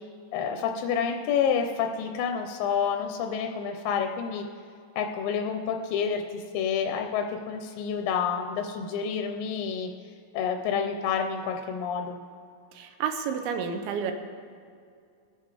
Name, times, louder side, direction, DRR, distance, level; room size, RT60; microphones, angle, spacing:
voice 1, 0.3-4.5 5.0-9.9 10.3-12.2, left 7 dB, 75° left, 4 dB, 2.3 m, -29 dB
voice 2, 12.7-14.1, right 7 dB, 75° right, 6 dB, 2.9 m, -30 dB
22.5 x 7.9 x 4.8 m, 2.3 s
omnidirectional pair, 4.6 m